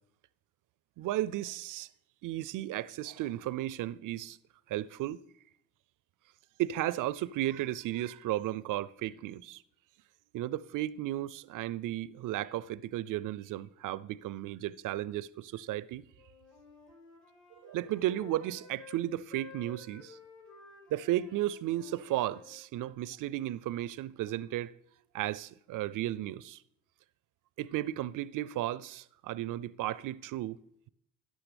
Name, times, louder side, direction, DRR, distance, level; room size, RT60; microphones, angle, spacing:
voice 1, 1.0-1.9 2.2-4.4 4.7-5.2 6.6-9.6 10.3-16.1 17.6-20.2 20.9-24.7 25.1-26.6 27.6-30.6, right 14 dB, 55° right, 0.5 m, -34 dB
Wind instrument woodwind instrument, 16.2-19.0 19.3-22.6, left 4 dB, 55° left, 4.9 m, -53 dB
13.5 x 9.8 x 3.4 m
hypercardioid pair, 40°, 37 cm